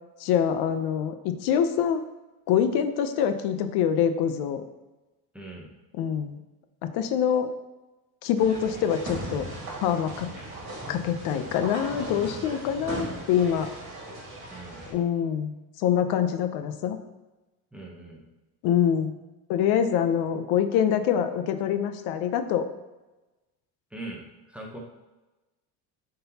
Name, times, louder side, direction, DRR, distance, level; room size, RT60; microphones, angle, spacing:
voice 1, 0.2-2.0 2.5-4.6 5.9-6.4 6.8-7.5 8.2-9.5 9.8-10.3 10.9-13.7 14.9-17.0 18.6-19.1 19.5-22.7, left 8 dB, 75° left, 9 dB, 0.6 m, -25 dB
voice 2, 5.3-5.7 14.5-14.8 17.7-18.2 23.9-24.8, right 2 dB, 5° right, -2 dB, 0.7 m, -41 dB
sound 1, 8.3-14.9, right 1 dB, 35° right, 1.8 m, -38 dB
9.5 x 3.9 x 2.8 m, 1.1 s
cardioid pair, 165°, 39 cm